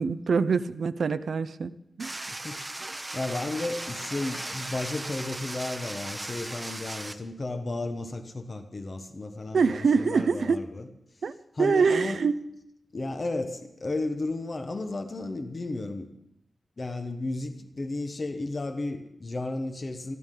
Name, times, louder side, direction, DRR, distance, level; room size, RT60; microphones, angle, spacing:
voice 1, 0.0-1.7 2.0-2.3 9.5-10.6 11.2-11.3 11.6-12.4, right 5 dB, 85° right, 12 dB, 0.6 m, -25 dB
sound 1, 2.0-7.1, right 2 dB, 20° right, 0.9 m, -37 dB
voice 2, 2.3-2.6 3.1-10.9 11.5-12.2 12.9-16.1 16.8-20.2, left 2 dB, 40° left, 6 dB, 1.1 m, -33 dB
20.5 x 14.5 x 3.8 m, 0.76 s
wide cardioid pair, 140°, 0 cm